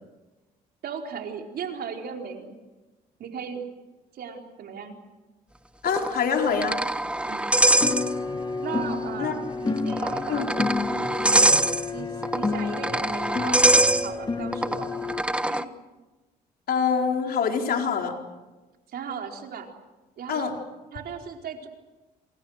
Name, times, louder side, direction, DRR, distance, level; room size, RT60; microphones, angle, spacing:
voice 1, 0.8-2.5 3.2-3.6 4.1-5.0 7.2-7.5 8.6-10.5 10.9-11.6 11.9-14.9 15.5-15.7 18.9-19.7 20.2-20.5 20.9-21.7, right 6 dB, 65° right, 2 dB, 4.4 m, -37 dB
voice 2, 5.8-6.8 9.2-9.3 9.7-9.8 10.3-10.5 16.7-18.2 20.3-20.5, left 6 dB, 65° left, 2 dB, 4.5 m, -25 dB
sound 1, 5.9-8.5 8.8-8.9 9.8-15.6, right 1 dB, 5° right, 1.4 m, -24 dB
sound 2, 7.8-15.2, left 4 dB, 25° left, 2.0 m, -30 dB
27.5 x 27.5 x 6.6 m, 1.1 s
cardioid pair, 85°, 17 cm